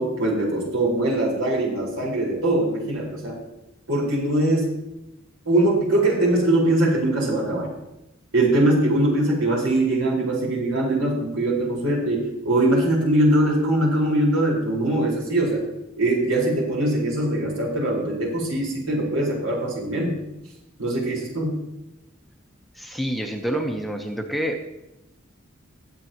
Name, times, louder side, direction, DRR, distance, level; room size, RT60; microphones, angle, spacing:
voice 1, 0.0-3.4 3.9-4.8 5.5-7.7 8.3-15.6 16.0-20.2 20.8-21.6, right 1 dB, 80° right, -3 dB, 4.6 m, -22 dB
voice 2, 22.7-24.6, right 1 dB, ahead, 3 dB, 0.8 m, -27 dB
20.5 x 8.3 x 3.0 m, 0.89 s
head